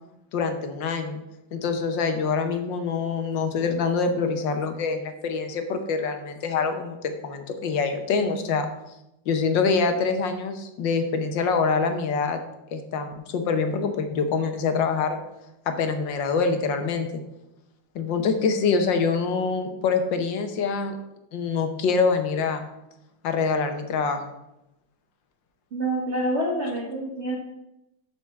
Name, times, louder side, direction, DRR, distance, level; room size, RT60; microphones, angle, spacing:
voice 1, 0.3-1.2 1.5-8.7 9.3-12.4 12.7-15.2 15.7-17.1 18.0-21.0 21.3-22.7 23.2-24.2, left 5 dB, 75° left, 7 dB, 1.7 m, -25 dB
voice 2, 25.7-27.4, right 1 dB, 40° right, -3 dB, 1.6 m, -27 dB
7.6 x 5.0 x 7.0 m, 0.90 s
omnidirectional pair, 2.0 m